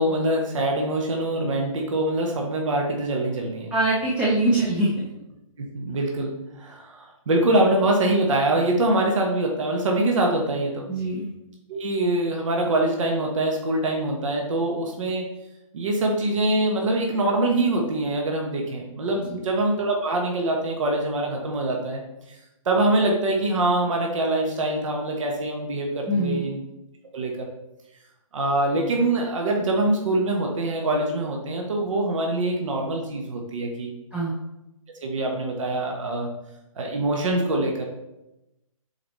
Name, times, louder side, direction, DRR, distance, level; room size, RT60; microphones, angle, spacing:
voice 1, 0.0-3.7 5.6-6.3 6.6-10.8 11.7-15.3 15.7-22.0 22.6-26.6 27.1-27.5 28.3-33.9 35.0-36.3 36.7-37.8, right 2 dB, 60° right, 1 dB, 1.3 m, -24 dB
voice 2, 3.7-4.9 10.9-11.3 19.3-19.4 26.1-26.5 34.1-34.3, right 1 dB, 5° right, -6 dB, 0.5 m, -23 dB
7.1 x 4.2 x 3.1 m, 0.92 s
hypercardioid pair, 150°, 18 cm